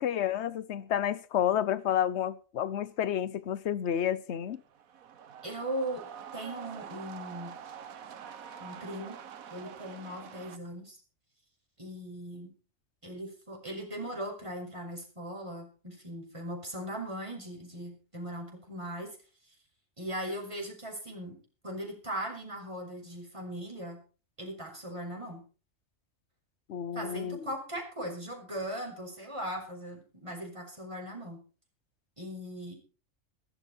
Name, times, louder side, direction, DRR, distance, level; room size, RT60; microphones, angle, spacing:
voice 1, 0.0-4.6 26.7-27.5, left 10 dB, 55° left, 1.1 m, -30 dB
sound 1, 4.5-10.6, right 8 dB, 85° right, 1.5 m, -46 dB
voice 2, 5.4-6.0 6.3-7.6 8.6-9.2 9.5-11.0 11.8-12.5 13.0-19.1 20.0-21.4 21.6-24.0 24.4-25.4 26.9-31.4 32.2-32.7, equal, 20° right, 5.9 m, -39 dB
16.5 x 14.5 x 4.5 m
omnidirectional pair, 1.4 m